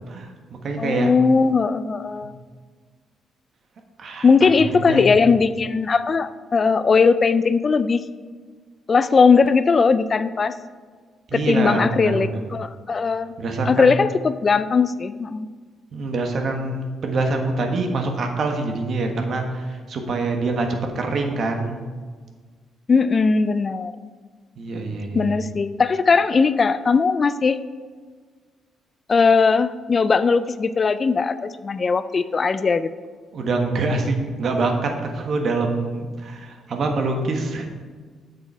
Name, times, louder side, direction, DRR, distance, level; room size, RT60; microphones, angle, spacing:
voice 1, 0.1-1.1 4.0-5.1 11.3-12.4 13.4-14.0 15.9-21.8 24.6-25.4 33.3-37.7, right 3 dB, 55° right, 4 dB, 1.4 m, -25 dB
voice 2, 0.8-2.3 4.2-8.0 8.9-10.5 11.3-13.3 13.7-15.5 22.9-23.9 25.1-27.6 29.1-32.9, left 5 dB, 40° left, 13 dB, 0.3 m, -19 dB
7.9 x 6.8 x 4.5 m, 1.5 s
cardioid pair, 90°, 0 cm